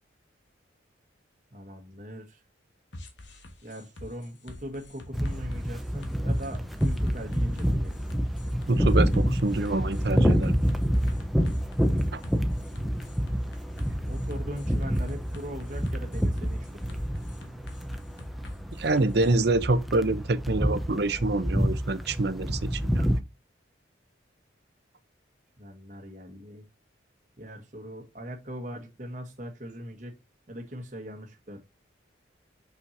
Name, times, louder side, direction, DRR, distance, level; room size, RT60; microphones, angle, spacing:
voice 1, 1.5-2.4 3.6-7.9 14.0-17.0 25.6-26.6 27.4-30.1 30.5-31.6, equal, 40° right, 1.2 m, -40 dB
sound 1, 2.9-19.3, left 1 dB, 65° left, 1.3 m, -47 dB
sound 2, 5.1-23.2, equal, ahead, 0.6 m, -27 dB
voice 2, 8.7-10.6 12.1-12.2 18.8-23.1, right 2 dB, 55° right, 0.7 m, -26 dB
6.3 x 5.8 x 2.6 m
head